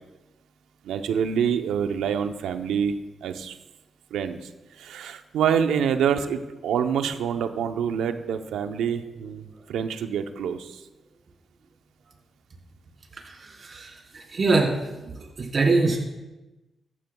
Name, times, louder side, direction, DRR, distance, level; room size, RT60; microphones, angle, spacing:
voice 1, 0.8-3.0 3.2-3.6 4.1-4.5 4.8-10.8, right 7 dB, 85° right, 8 dB, 0.7 m, -26 dB
voice 2, 13.2-14.0 14.3-15.0 15.4-16.0, right 3 dB, 50° right, -2 dB, 4.3 m, -23 dB
14.5 x 12.5 x 2.3 m, 1.1 s
supercardioid pair, 50°, 0 cm